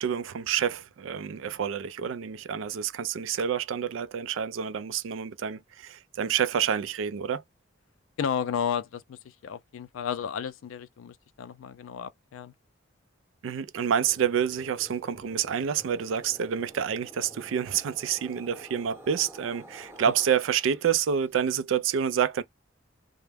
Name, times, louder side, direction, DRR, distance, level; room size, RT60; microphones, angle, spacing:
voice 1, 0.0-7.4 13.4-22.4, right 8 dB, 75° right, 0.3 m, -28 dB
voice 2, 8.2-12.5, left 7 dB, 90° left, 0.4 m, -33 dB
sound 1, 13.7-21.1, right 1 dB, 15° right, 0.8 m, -50 dB
2.2 x 2.0 x 3.2 m
head